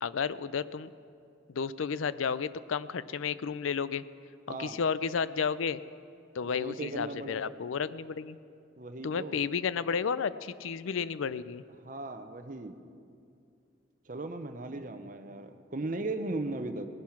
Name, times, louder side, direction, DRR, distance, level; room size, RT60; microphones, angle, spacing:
voice 1, 0.0-0.9 1.5-4.0 4.5-5.8 6.3-8.4 9.0-11.6, left 6 dB, 85° left, 16 dB, 0.4 m, -32 dB
voice 2, 4.5-4.8 6.5-7.5 8.8-9.4 11.8-12.8 14.1-16.9, right 2 dB, 40° right, 7 dB, 0.7 m, -37 dB
18.5 x 10.5 x 5.9 m, 2.4 s
head